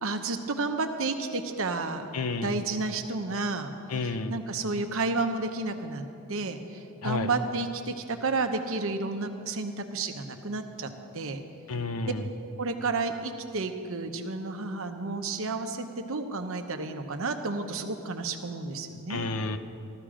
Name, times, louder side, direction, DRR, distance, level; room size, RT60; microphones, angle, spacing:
voice 1, 0.0-2.1 2.4-3.7 4.3-6.0 6.3-11.4 12.6-19.3, right 3 dB, 65° right, 6 dB, 0.9 m, -31 dB
voice 2, 2.1-2.6 3.9-4.4 7.0-7.3 11.7-12.3 19.1-19.6, left 3 dB, 80° left, 9 dB, 0.7 m, -31 dB
14.0 x 13.5 x 5.0 m, 2.6 s
head